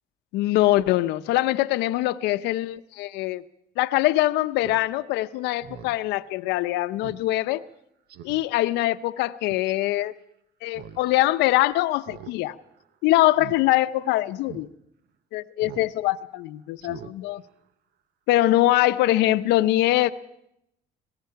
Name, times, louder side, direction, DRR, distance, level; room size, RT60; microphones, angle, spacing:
voice 1, 0.3-3.4 3.8-7.6 8.2-10.1 10.6-12.5 13.0-14.7 15.3-17.4 18.3-20.1, left 16 dB, 90° left, 0.7 m, -23 dB
Speech synthesizer, 4.6-4.8 5.2-5.3 5.6-6.0 6.4-6.5 7.0-7.2 7.6-7.7 8.1-8.4 9.4-9.7 10.7-11.0 11.3-11.4 12.0-12.3 12.6-12.9 13.3-13.6 14.0-14.1 14.5-14.7 15.6-15.9 16.2-16.4 16.8-17.1 17.5-17.6, right 9 dB, 70° right, 1.0 m, -43 dB
25.5 x 18.5 x 5.8 m
cardioid pair, 110°, 17 cm